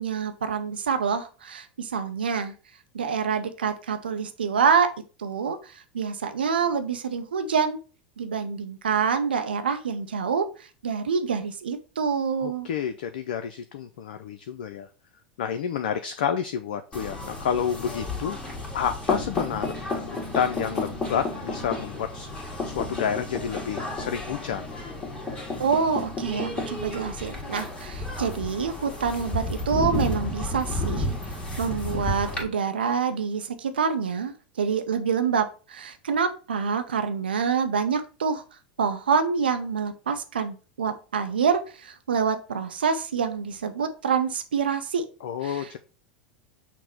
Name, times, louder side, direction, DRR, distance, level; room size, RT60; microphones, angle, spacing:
voice 1, 0.0-2.5 2.9-4.9 5.2-7.8 8.2-10.4 10.8-12.7 25.6-31.1 31.6-38.4 38.8-45.0 45.4-45.8, right 6 dB, 80° right, 8 dB, 0.6 m, -26 dB
voice 2, 12.4-14.9 15.4-18.4 18.7-24.6 45.2-45.8, left 8 dB, 70° left, 8 dB, 0.3 m, -30 dB
sound 1, 16.9-32.4, left 2 dB, 20° left, 1.6 m, -32 dB
5.9 x 2.0 x 4.3 m, 0.35 s
hypercardioid pair, 85°, 5 cm